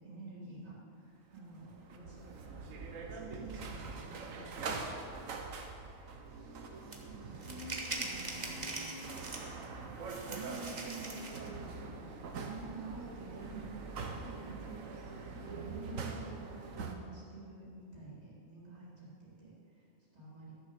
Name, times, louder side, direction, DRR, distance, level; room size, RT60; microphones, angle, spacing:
voice 1, 0.0-2.3 3.0-4.9 7.1-9.1 10.2-19.5 20.1-20.5, right 3 dB, 50° right, -6 dB, 3.4 m, -49 dB
sound 1, 1.4-16.9, right 4 dB, 75° right, 1.3 m, -44 dB
sound 2, 6.9-7.0 7.4-9.6 10.1-11.5, right 2 dB, 35° right, 1.2 m, -42 dB
12.0 x 7.0 x 6.7 m, 2.4 s
omnidirectional pair, 1.4 m